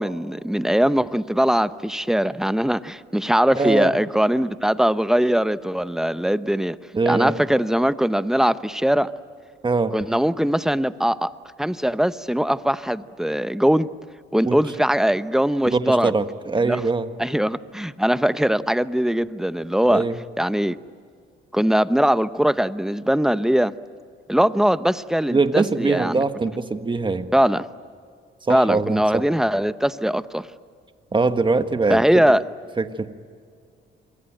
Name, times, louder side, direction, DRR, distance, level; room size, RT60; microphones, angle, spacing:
voice 1, 0.0-6.8 7.1-9.1 9.9-11.3 11.6-13.9 14.3-16.1 16.6-16.8 17.2-20.0 20.4-20.8 21.5-23.7 24.3-26.2 27.3-27.7 28.5-30.5 31.9-32.4, equal, ahead, 14 dB, 0.8 m, -21 dB
voice 2, 3.5-3.9 6.9-7.4 9.6-9.9 14.5-14.6 15.7-17.1 19.9-20.2 25.3-27.3 28.5-29.2 31.1-32.0 32.8-33.1, right 3 dB, 25° right, 9 dB, 1.5 m, -22 dB
27.0 x 22.5 x 9.0 m, 2.2 s
cardioid pair, 90°, 20 cm